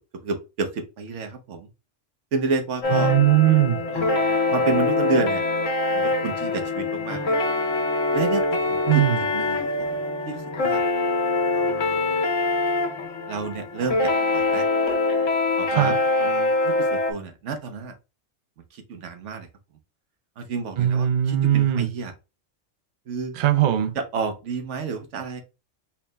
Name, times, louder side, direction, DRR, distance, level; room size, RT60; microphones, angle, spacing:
voice 1, 0.2-1.7 2.3-3.1 3.9-5.4 5.9-7.4 8.1-9.0 9.3-10.0 10.3-10.8 11.5-12.1 13.3-14.7 15.6-18.0 18.7-19.5 20.4-22.1 23.1-23.4 23.9-25.4, right 4 dB, 75° right, 1.1 m, -30 dB
sound 1, 2.8-17.1, left 2 dB, 75° left, 1.3 m, -24 dB
voice 2, 2.9-3.8 8.9-9.2 15.7-16.0 20.8-21.9 23.4-23.9, right 12 dB, 60° right, 0.5 m, -19 dB
4.5 x 2.1 x 3.3 m
omnidirectional pair, 1.3 m